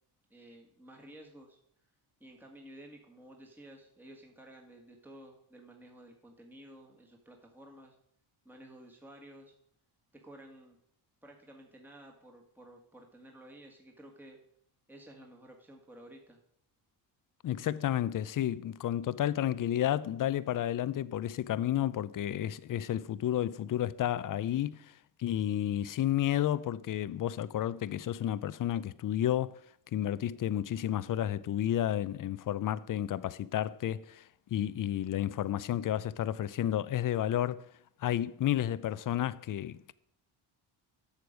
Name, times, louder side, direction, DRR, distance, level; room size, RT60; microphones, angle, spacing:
voice 1, 0.3-1.6 2.2-7.9 8.4-9.5 10.1-10.8 11.2-14.4 14.9-16.4, right 1 dB, 5° right, 1.6 m, -53 dB
voice 2, 17.4-29.5 29.9-37.7 38.0-39.9, left 11 dB, 40° left, 0.5 m, -31 dB
8.1 x 6.7 x 5.1 m
supercardioid pair, 65°, 49 cm